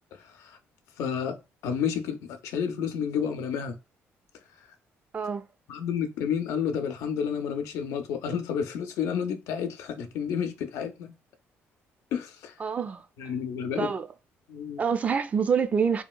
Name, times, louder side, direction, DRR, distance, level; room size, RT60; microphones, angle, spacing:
voice 1, 0.1-0.6 1.0-1.4 1.6-3.8 5.7-11.1 12.1-12.5 13.2-13.9 14.5-14.8, left 7 dB, 85° left, 0.5 m, -30 dB
voice 2, 5.1-5.5 12.6-13.0 13.8-14.1 14.8-16.0, right 6 dB, 30° right, 0.3 m, -26 dB
3.0 x 2.7 x 2.3 m
cardioid pair, 125°, 5 cm